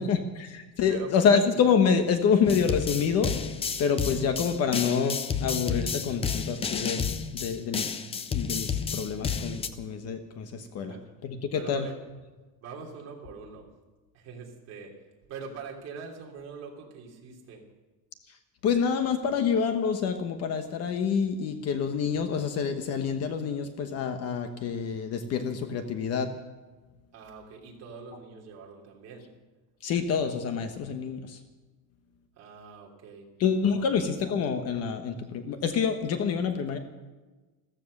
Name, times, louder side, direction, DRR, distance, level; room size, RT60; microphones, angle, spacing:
voice 1, 0.0-3.4 3.8-7.1 7.3-8.0 8.3-10.9 11.2-11.9 18.3-18.4 18.6-26.3 29.8-31.4 33.4-36.8, left 6 dB, 35° left, 7 dB, 1.1 m, -27 dB
sound 1, 2.4-9.7, left 6 dB, 15° left, 0.5 m, -31 dB
voice 2, 11.5-12.0 12.6-13.7 14.1-14.9 15.3-17.6 27.1-29.3 32.3-33.2 33.6-33.8, right 5 dB, 35° right, -1 dB, 3.4 m, -43 dB
15.0 x 14.5 x 6.5 m, 1.2 s
cardioid pair, 170°, 43 cm